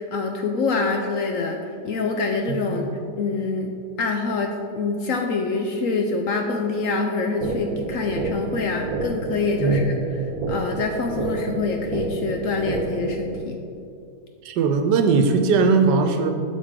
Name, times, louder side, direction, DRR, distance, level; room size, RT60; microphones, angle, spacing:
voice 1, 0.0-3.7 4.0-13.6, left 3 dB, 70° left, 3 dB, 0.8 m, -26 dB
voice 2, 2.5-2.9 9.6-9.9 14.4-16.3, right 4 dB, 90° right, 6 dB, 1.3 m, -19 dB
sound 1, 7.4-13.4, right 3 dB, 65° right, 1.1 m, -29 dB
8.2 x 7.1 x 3.7 m, 2.5 s
omnidirectional pair, 1.8 m